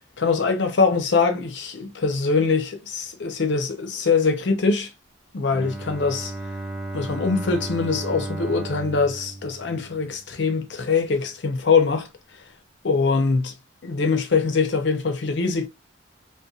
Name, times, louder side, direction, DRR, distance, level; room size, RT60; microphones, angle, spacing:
voice 1, 0.2-4.9 5.3-6.3 6.9-12.1 12.8-13.5 13.8-15.7, left 4 dB, 70° left, 0.6 m, -23 dB
Bowed string instrument, 5.5-10.4, right 2 dB, ahead, 0.3 m, -34 dB
2.6 x 2.2 x 2.3 m
head